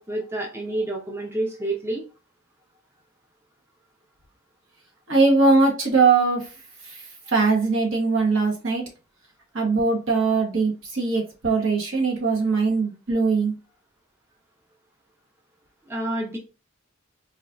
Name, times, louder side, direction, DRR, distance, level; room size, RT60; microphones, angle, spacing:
voice 1, 0.0-2.0 15.9-16.4, right 1 dB, 10° right, 0 dB, 0.5 m, -28 dB
voice 2, 5.1-6.5 6.8-7.0 7.3-8.8 9.5-13.5, right 4 dB, 65° right, 0 dB, 1.0 m, -21 dB
4.1 x 2.3 x 2.4 m, 0.31 s
head